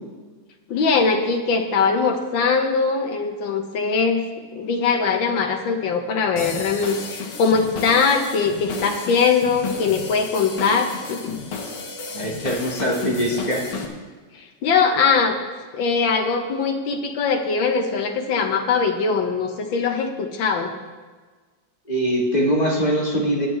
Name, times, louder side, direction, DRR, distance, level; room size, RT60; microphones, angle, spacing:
voice 1, 0.7-4.2 4.5-11.4 14.3-15.4 15.7-20.7, left 5 dB, 90° left, 4 dB, 1.9 m, -21 dB
sound 1, 6.4-13.9, left 4 dB, 65° left, 1.9 m, -33 dB
voice 2, 12.1-13.6 21.9-23.5, equal, 25° left, -2 dB, 1.7 m, -22 dB
20.0 x 9.0 x 3.3 m, 1.4 s
omnidirectional pair, 2.1 m